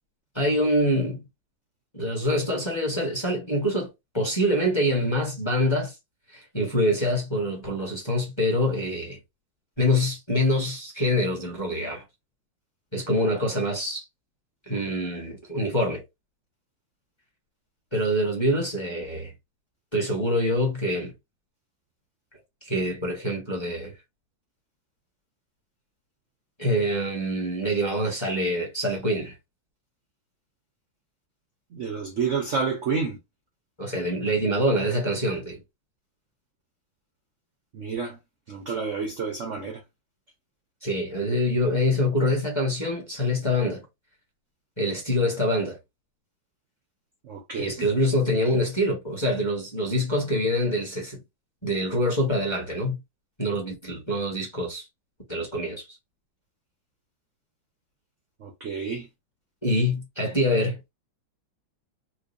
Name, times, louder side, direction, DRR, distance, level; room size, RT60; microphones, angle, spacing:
voice 1, 0.3-1.2 1.9-3.9 4.1-5.9 6.3-9.2 9.8-12.0 12.9-14.0 14.7-16.0 17.9-19.3 19.9-21.1 22.6-23.9 26.6-29.3 33.8-35.6 40.8-43.8 44.8-45.8 47.5-51.2 51.6-53.0 53.4-54.8 55.3-55.8 59.6-60.9, equal, 15° left, 1.1 m, -25 dB
voice 2, 31.7-33.2 37.7-38.2 38.5-39.8 47.2-47.9 58.4-59.1, right 5 dB, 60° right, 0.8 m, -29 dB
4.4 x 2.4 x 2.6 m
omnidirectional pair, 2.2 m